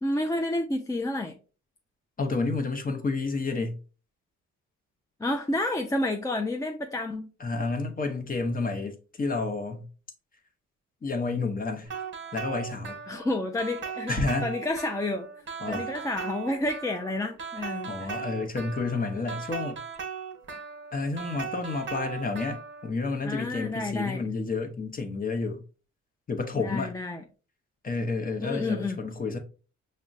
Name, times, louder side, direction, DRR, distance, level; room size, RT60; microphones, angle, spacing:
voice 1, 0.0-1.4 5.2-7.3 13.1-14.2 14.4-15.3 15.7-18.3 23.2-24.2 26.5-27.2 28.4-29.0, left 2 dB, 10° left, 0.4 m, -30 dB
voice 2, 2.2-3.8 7.4-9.8 11.0-11.9 12.3-13.0 14.1-14.5 15.6-15.9 17.9-19.8 20.9-25.6 26.3-26.9 27.8-29.4, left 3 dB, 30° left, 0.8 m, -30 dB
sound 1, 11.9-22.9, right 6 dB, 40° right, 1.1 m, -38 dB
6.0 x 2.2 x 2.5 m
cardioid pair, 90°, 30 cm